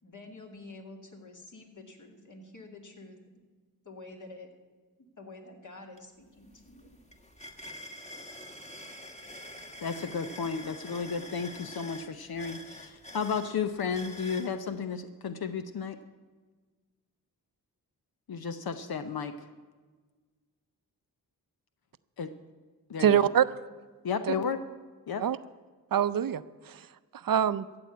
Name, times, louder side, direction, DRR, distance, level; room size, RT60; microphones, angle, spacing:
voice 1, 0.0-3.2 3.8-4.5 5.2-6.9, left 2 dB, 55° left, 2 dB, 2.5 m, -48 dB
sound 1, 6.0-6.1 6.4-14.5, left 1 dB, 20° left, 1.5 m, -46 dB
voice 2, 9.8-16.0 18.3-19.3 22.2-22.3 22.9-23.3 24.0-24.6 25.1-25.2, left 6 dB, 75° left, 9 dB, 0.8 m, -33 dB
voice 3, 23.0-23.5 24.3-24.4 25.2-25.4 25.9-26.9 27.1-27.7, right 9 dB, 65° right, 15 dB, 0.6 m, -25 dB
13.5 x 8.0 x 8.4 m, 1.4 s
wide cardioid pair, 75°, 37 cm